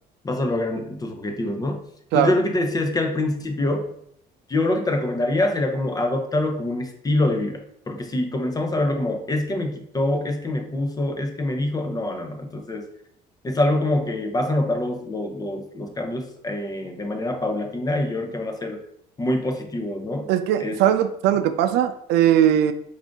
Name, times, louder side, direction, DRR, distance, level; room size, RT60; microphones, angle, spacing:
voice 1, 0.2-1.9 2.1-3.9 4.5-7.6 7.9-12.9 13.4-18.8 19.2-20.3 20.6-20.8, left 1 dB, 20° left, 4 dB, 0.6 m, -25 dB
voice 2, 20.3-22.7, right 11 dB, 85° right, 10 dB, 0.4 m, -19 dB
3.9 x 2.4 x 3.6 m, 0.71 s
cardioid pair, 110°, 17 cm